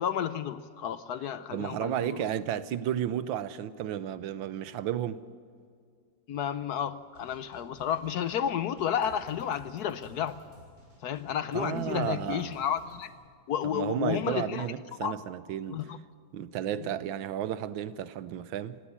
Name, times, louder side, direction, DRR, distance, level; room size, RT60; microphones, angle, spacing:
voice 1, 0.0-2.2 6.3-10.4 11.0-13.1 13.5-14.7 15.0-15.1 15.7-16.0 16.8-16.9, left 9 dB, 65° left, 1.1 m, -31 dB
voice 2, 1.5-5.2 11.5-12.6 13.6-15.8 16.3-18.8, right 10 dB, 90° right, 1.5 m, -33 dB
sound 1, 7.0-13.1, equal, 35° right, 6.4 m, -55 dB
18.5 x 15.5 x 9.7 m
omnidirectional pair, 2.1 m